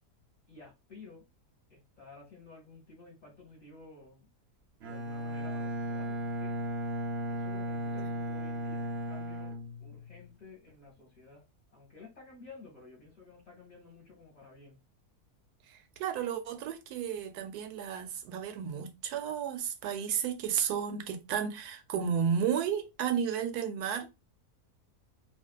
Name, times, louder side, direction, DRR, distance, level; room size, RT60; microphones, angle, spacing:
voice 1, 0.5-1.2 1.7-4.3 4.8-6.5 7.3-11.5 11.7-14.8, left 3 dB, 35° left, 0.9 m, -53 dB
Bowed string instrument, 4.8-10.3, right 1 dB, 60° right, 0.7 m, -36 dB
voice 2, 15.7-24.1, right 8 dB, 90° right, 1.1 m, -33 dB
2.5 x 2.4 x 2.3 m
omnidirectional pair, 1.6 m